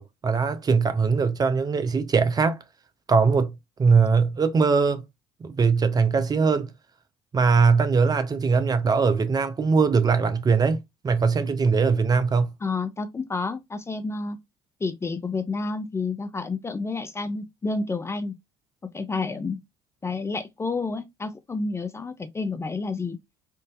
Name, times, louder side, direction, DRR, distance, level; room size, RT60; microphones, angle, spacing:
voice 1, 0.0-2.6 3.1-3.5 3.8-5.0 5.4-6.7 7.3-10.8 11.0-12.5, right 5 dB, 30° right, 0.6 m, -21 dB
voice 2, 12.6-14.4 14.8-18.3 18.9-19.6 20.0-23.2, left 3 dB, 20° left, 0.5 m, -30 dB
3.8 x 2.5 x 2.5 m
hypercardioid pair, 65°, 13 cm